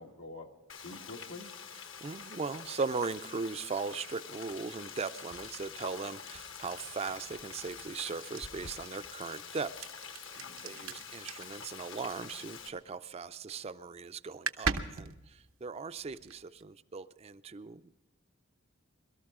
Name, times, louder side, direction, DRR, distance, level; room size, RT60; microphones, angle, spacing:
voice 1, 0.0-1.5 10.4-11.0, left 2 dB, 90° left, 1 dB, 2.1 m, -48 dB
Frying (food), 0.7-12.7, left 7 dB, 70° left, 1.2 m, -46 dB
voice 2, 2.0-9.8 10.1-10.3 10.6-17.9, right 4 dB, 30° right, 12 dB, 0.4 m, -38 dB
sound 1, 5.3-13.0 13.3-13.7 14.0-14.1 14.3-16.6, right 5 dB, 90° right, 0.9 m, -41 dB
sound 2, 8.4-8.8, left 1 dB, 40° left, 0.7 m, -47 dB
22.5 x 13.0 x 3.7 m, 1.0 s
head